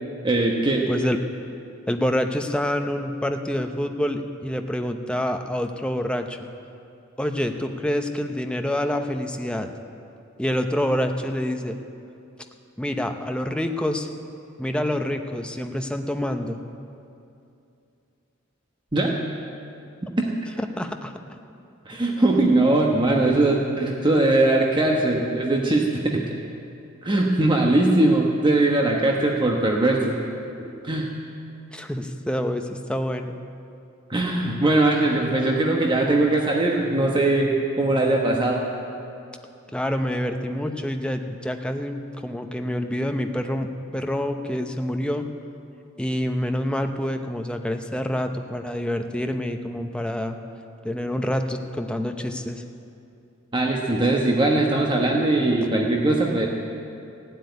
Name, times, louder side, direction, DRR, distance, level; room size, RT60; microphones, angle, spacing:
voice 1, 0.2-0.8 18.9-19.1 20.2-20.3 21.9-26.2 27.0-30.2 30.8-31.1 34.1-38.6 53.5-56.5, right 2 dB, 25° right, -1 dB, 1.1 m, -20 dB
voice 2, 0.9-1.2 1.9-6.4 7.2-9.7 10.4-11.8 12.8-14.1 14.6-16.6 20.6-21.1 31.7-33.4 39.7-45.3 46.0-50.4 50.8-52.6, left 1 dB, 5° left, 5 dB, 0.7 m, -27 dB
15.5 x 8.0 x 9.6 m, 2.6 s
head